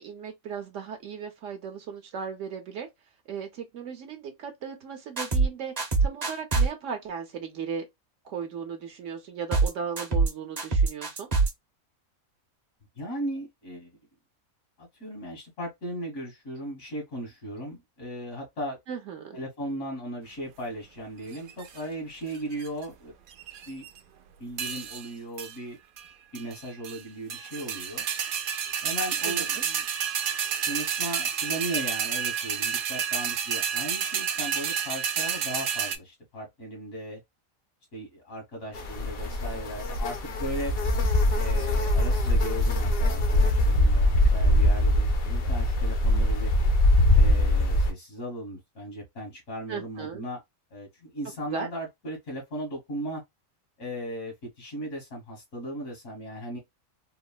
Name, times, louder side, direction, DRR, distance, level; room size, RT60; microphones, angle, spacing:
voice 1, 0.0-2.9 3.3-7.9 8.2-11.3 18.9-19.4 29.2-29.6 49.7-50.2 51.5-51.7, right 6 dB, 65° right, 1.0 m, -36 dB
sound 1, 5.2-5.5 5.8-6.7 9.5-9.7 10.0-10.3 10.6-11.5, right 4 dB, 35° right, 0.8 m, -23 dB
voice 2, 13.0-13.9 14.8-18.8 19.3-23.1 23.7-23.9 24.4-25.8 26.3-28.1 28.8-29.8 30.7-37.2 37.9-40.7 41.3-46.5 47.1-50.4 50.7-53.2 53.8-56.6, right 1 dB, 75° left, 1.8 m, -37 dB
sound 2, 21.3-21.8 22.3-22.8 23.3-24.0 24.6-25.1 25.4-25.5 26.0-26.1 26.3-27.0 27.3-36.0, right 7 dB, 85° right, 0.4 m, -30 dB
sound 3, 38.7-47.9, left 1 dB, 55° left, 0.8 m, -22 dB
3.6 x 2.0 x 2.2 m
omnidirectional pair, 1.4 m